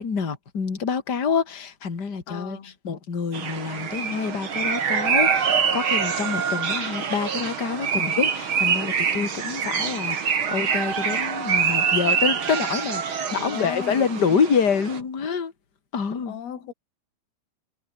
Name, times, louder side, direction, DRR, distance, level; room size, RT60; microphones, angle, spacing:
voice 1, 0.0-15.5 15.9-16.3, left 6 dB, 25° left, 2.6 m, -27 dB
voice 2, 2.3-2.8 13.3-14.4 16.3-16.7, left 9 dB, 55° left, 5.0 m, -36 dB
sound 1, 3.3-15.0, right 6 dB, 45° right, 1.8 m, -25 dB
omnidirectional pair, 5.4 m